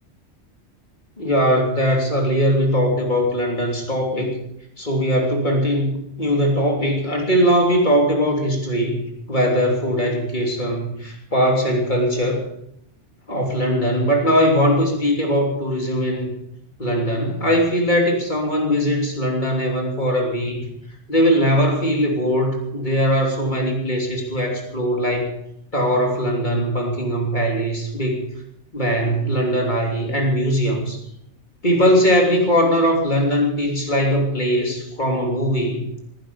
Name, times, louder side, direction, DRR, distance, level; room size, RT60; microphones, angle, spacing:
voice 1, 1.2-4.3 4.8-9.0 9.3-12.4 13.3-16.3 16.8-20.7 21.1-25.4 25.7-28.2 28.7-31.0 31.6-35.8, equal, 40° left, 1 dB, 3.4 m, -20 dB
18.0 x 11.0 x 7.0 m, 0.75 s
omnidirectional pair, 1.2 m